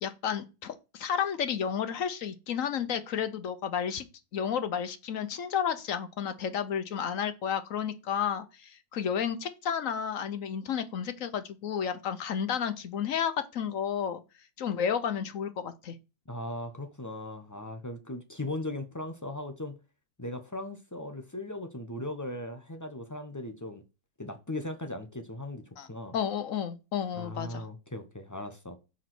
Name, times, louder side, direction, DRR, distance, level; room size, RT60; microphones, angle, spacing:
voice 1, 0.0-4.1 4.3-14.2 14.6-15.9 25.8-25.9 26.1-27.6, left 8 dB, 60° left, 0.9 m, -32 dB
voice 2, 16.3-19.8 20.2-23.8 24.2-25.6 25.9-26.2 27.1-28.8, left 1 dB, 25° left, 0.4 m, -38 dB
7.3 x 4.0 x 6.0 m
omnidirectional pair, 2.0 m